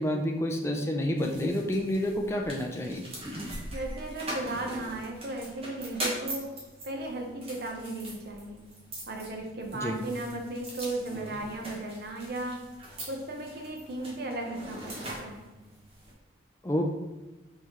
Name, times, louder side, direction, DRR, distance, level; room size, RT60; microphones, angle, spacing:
voice 1, 0.0-3.0 9.7-10.0 16.6-16.8, left 1 dB, 15° left, 1 dB, 0.4 m, -29 dB
sound 1, 1.2-16.1, right 1 dB, 30° right, 1.1 m, -41 dB
voice 2, 3.7-6.5 6.8-8.6 9.1-12.7 13.1-14.9 15.2-15.4, right 2 dB, 55° right, 2 dB, 0.8 m, -36 dB
5.6 x 3.1 x 3.0 m, 1.1 s
head